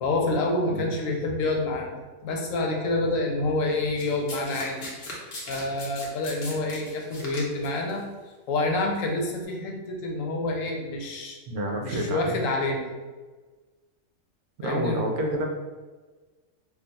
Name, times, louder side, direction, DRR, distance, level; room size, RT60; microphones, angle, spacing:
voice 1, 0.0-4.9 5.5-8.0 8.5-11.4 11.8-12.9 14.6-15.0, left 2 dB, 90° left, 1 dB, 1.0 m, -27 dB
Domestic sounds home sounds, 4.0-7.9 8.8-9.0, left 1 dB, 55° left, 0.9 m, -39 dB
voice 2, 11.5-12.4 14.6-15.4, right 1 dB, 65° right, 1 dB, 0.7 m, -28 dB
2.4 x 2.3 x 3.9 m, 1.3 s
omnidirectional pair, 1.3 m